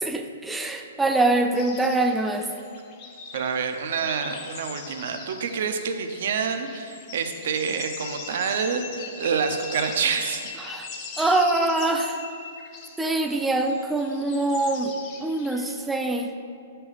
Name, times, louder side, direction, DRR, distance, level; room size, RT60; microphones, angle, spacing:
voice 1, 0.0-2.5 10.6-10.9 11.2-12.2 13.0-14.9 15.2-16.3, right 2 dB, 5° right, 4 dB, 0.3 m, -24 dB
sound 1, 1.5-15.7, left 5 dB, 30° left, 0.7 m, -40 dB
voice 2, 3.3-10.4, right 6 dB, 55° right, 7 dB, 0.6 m, -27 dB
8.4 x 5.6 x 4.1 m, 2.4 s
hypercardioid pair, 170°, 0 cm